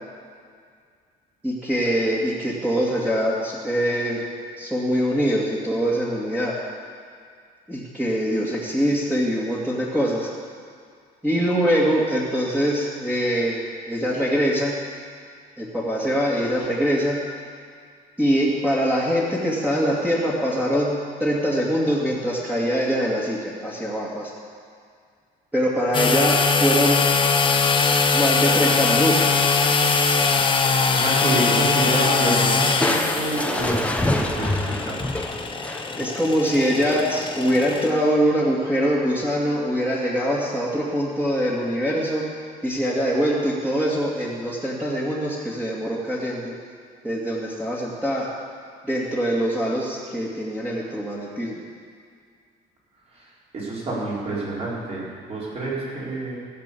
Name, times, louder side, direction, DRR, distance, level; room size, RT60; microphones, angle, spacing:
voice 1, 1.4-4.2 4.6-6.5 7.7-10.3 11.2-13.6 13.9-14.7 15.6-17.2 18.2-24.3 25.5-27.0 28.1-29.4 36.0-42.2 42.6-46.5 47.0-48.3 48.8-51.6, equal, 10° right, -7 dB, 2.4 m, -23 dB
sound 1, 25.9-37.9, left 4 dB, 30° left, 1.1 m, -22 dB
voice 2, 30.9-35.0 53.5-56.4, right 2 dB, 40° right, -6 dB, 4.6 m, -28 dB
Crushing, 32.8-36.2, left 1 dB, 5° left, 1.0 m, -26 dB
16.5 x 7.6 x 7.1 m, 2.1 s
cardioid pair, 110°, 17 cm